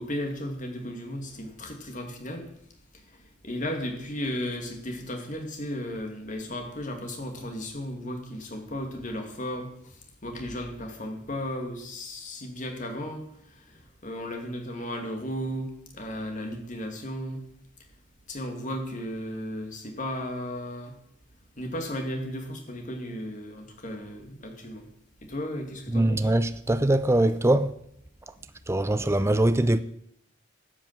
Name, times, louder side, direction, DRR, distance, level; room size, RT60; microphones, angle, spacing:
voice 1, 0.0-2.4 3.4-9.7 10.2-13.2 13.7-17.4 18.3-20.9 21.6-24.9 25.2-26.3, equal, 45° left, 2.7 m, -35 dB
voice 2, 25.9-27.7 28.7-29.8, right 1 dB, 15° right, 0.5 m, -22 dB
12.0 x 8.6 x 7.7 m
head